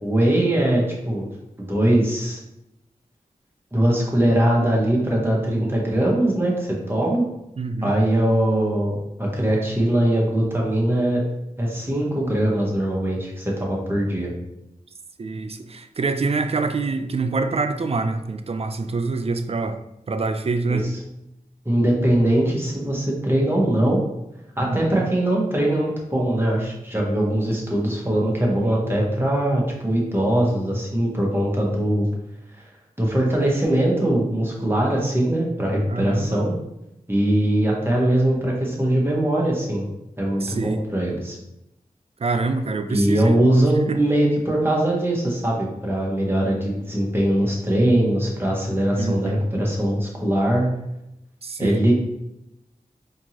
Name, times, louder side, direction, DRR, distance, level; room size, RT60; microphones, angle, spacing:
voice 1, 0.0-1.3 1.6-2.4 3.7-7.3 7.8-11.2 11.6-14.3 20.7-20.8 21.6-24.0 24.6-32.1 32.5-32.6 33.0-36.5 37.1-39.8 40.2-41.4 42.9-50.7 51.6-51.9, right 1 dB, 15° right, -3 dB, 1.2 m, -21 dB
voice 2, 7.6-7.9 15.2-19.8 20.1-20.9 24.7-25.1 35.9-36.4 40.4-40.8 42.2-43.4 43.9-44.0 49.0-49.4 51.4-51.8, right 3 dB, 45° right, 8 dB, 0.4 m, -25 dB
4.3 x 2.9 x 2.8 m, 0.87 s
wide cardioid pair, 60°, 15 cm